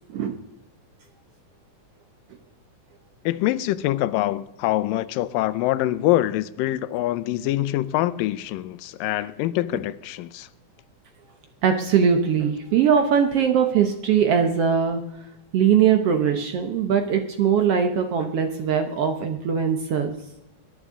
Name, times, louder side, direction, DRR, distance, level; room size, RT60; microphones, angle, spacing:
voice 1, 3.3-10.5, left 15 dB, 85° left, 2.3 m, -24 dB
voice 2, 11.6-15.0 15.5-20.1, right 7 dB, 70° right, 1.4 m, -21 dB
20.0 x 10.5 x 3.7 m
omnidirectional pair, 3.9 m